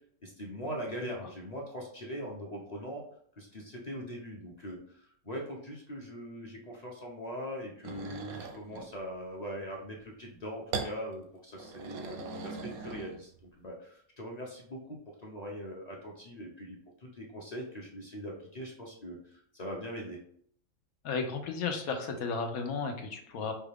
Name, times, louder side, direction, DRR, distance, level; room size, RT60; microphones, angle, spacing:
voice 1, 0.2-3.0 3.4-13.3 13.6-20.2, equal, 35° left, -2 dB, 0.7 m, -41 dB
sound 1, 7.8-8.9 10.7-11.0 11.5-13.4, right 4 dB, 90° right, 1.1 m, -39 dB
voice 2, 21.0-23.5, left 4 dB, 90° left, 5 dB, 1.2 m, -34 dB
5.4 x 2.5 x 3.4 m, 0.63 s
omnidirectional pair, 1.4 m